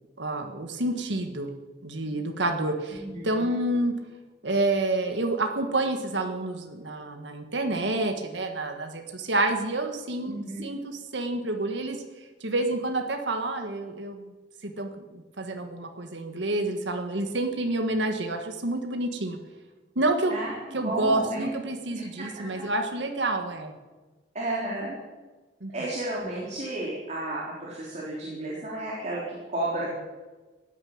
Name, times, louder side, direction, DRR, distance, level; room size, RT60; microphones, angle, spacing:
voice 1, 0.2-1.5 1.8-3.9 4.4-14.3 14.6-19.4 20.0-20.3 20.7-23.8 25.6-25.7, right 2 dB, 75° right, 4 dB, 1.6 m, -29 dB
voice 2, 2.9-3.5 10.3-10.7 20.3-20.5 20.8-21.5 21.9-22.7 24.3-25.0 25.7-29.9, right 1 dB, 40° right, -5 dB, 4.0 m, -32 dB
16.5 x 9.9 x 8.8 m, 1.3 s
head